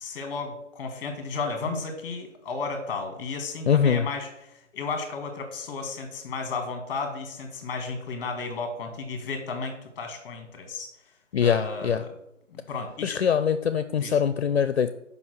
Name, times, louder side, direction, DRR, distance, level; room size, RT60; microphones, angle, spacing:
voice 1, 0.0-10.9 11.4-12.1 12.5-13.2 14.0-14.2, left 4 dB, 20° left, 5 dB, 1.7 m, -33 dB
voice 2, 3.7-4.1 11.3-12.0 13.0-14.9, left 7 dB, 55° left, 11 dB, 0.6 m, -23 dB
7.0 x 5.4 x 6.5 m, 0.86 s
hypercardioid pair, 160°, 38 cm